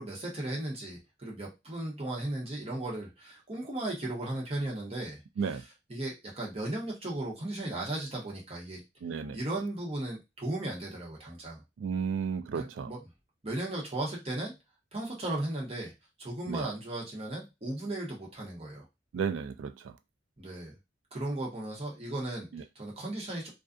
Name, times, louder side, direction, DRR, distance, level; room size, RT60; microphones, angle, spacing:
voice 1, 0.0-5.2 5.9-8.8 9.3-11.6 12.5-13.0 13.4-14.5 14.9-15.9 16.2-18.8 20.4-20.8 21.1-22.5 22.7-23.5, right 1 dB, 35° right, 1.0 m, -36 dB
voice 2, 9.0-9.4 11.8-12.9 16.5-16.7 19.1-19.9 22.5-22.6, right 6 dB, 80° right, 0.3 m, -33 dB
2.4 x 2.3 x 2.4 m
head